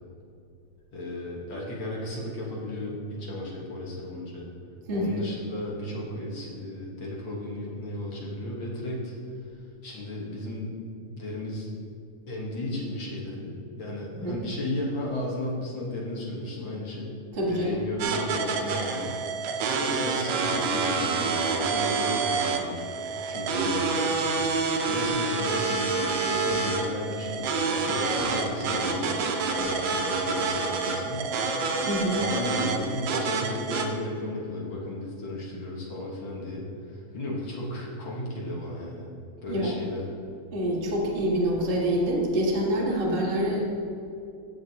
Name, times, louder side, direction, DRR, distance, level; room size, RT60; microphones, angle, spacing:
voice 1, 0.9-4.5 4.9-9.1 9.8-10.8 11.1-11.7 12.3-17.2 17.5-19.2 19.8-22.9 23.3-24.5 24.8-25.8 26.2-29.2 29.6-31.2 32.1-39.1 39.4-40.0, left 1 dB, 50° left, -3 dB, 1.5 m, -34 dB
voice 2, 4.9-5.2 14.1-14.3 17.3-17.8 31.8-32.2 39.5-39.8 40.5-43.7, right 1 dB, 30° right, -5 dB, 1.0 m, -26 dB
sound 1, 18.0-33.8, right 4 dB, 70° right, 1.8 m, -27 dB
16.0 x 6.3 x 2.9 m, 2.6 s
omnidirectional pair, 3.7 m